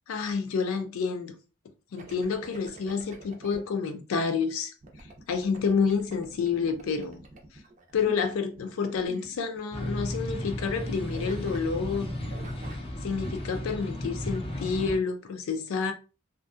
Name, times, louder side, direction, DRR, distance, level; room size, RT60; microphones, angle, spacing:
voice 1, 0.1-1.4 1.9-4.7 5.3-7.2 7.9-12.1 13.0-15.9, left 5 dB, 90° left, 0.4 m, -29 dB
sound 1, 2.0-3.6 4.8-10.5 10.7-12.9, right 2 dB, 35° right, 0.5 m, -47 dB
sound 2, 9.7-15.0, left 1 dB, 30° left, 0.4 m, -34 dB
2.6 x 2.1 x 2.3 m
head